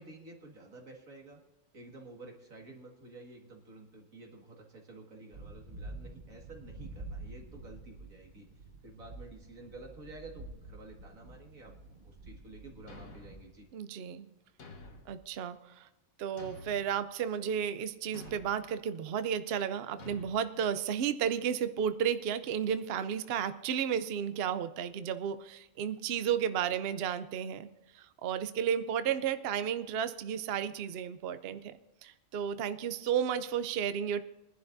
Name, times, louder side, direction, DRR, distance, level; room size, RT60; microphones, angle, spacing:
voice 1, 0.0-1.4 1.7-8.5 8.8-13.7, right 2 dB, 90° right, 0 dB, 2.4 m, -51 dB
sound 1, 5.3-13.4, right 2 dB, 40° right, 1.2 m, -48 dB
Thump thud, 12.9-13.5 14.6-15.2 16.4-16.9 18.1-18.6 20.0-20.3, left 1 dB, 90° left, 1.9 m, -49 dB
voice 2, 13.7-14.3 15.1-15.9 16.2-27.7 27.9-31.7 32.0-34.2, right 8 dB, 60° right, 11 dB, 0.7 m, -33 dB
22.0 x 11.0 x 2.6 m, 0.99 s
omnidirectional pair, 1.4 m